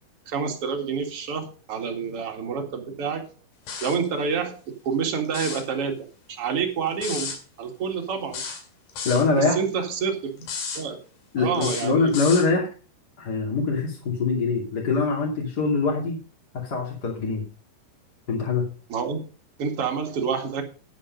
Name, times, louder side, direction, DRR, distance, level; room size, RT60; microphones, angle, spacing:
voice 1, 0.3-3.3 3.8-6.0 6.3-8.4 9.4-10.5 10.7-11.0 11.4-12.1 18.9-19.2 19.6-20.6, right 6 dB, 45° right, 3 dB, 2.4 m, -28 dB
sound 1, 3.7-4.1 5.3-5.7 7.0-7.4 8.3-9.3 10.4-10.8 11.6-12.5, left 5 dB, 70° left, 4.2 m, -33 dB
voice 2, 9.0-9.6 11.3-12.7 13.2-16.2 16.5-17.5 18.3-18.7, left 4 dB, 30° left, -2 dB, 2.5 m, -23 dB
10.5 x 8.8 x 5.2 m, 0.37 s
omnidirectional pair, 4.6 m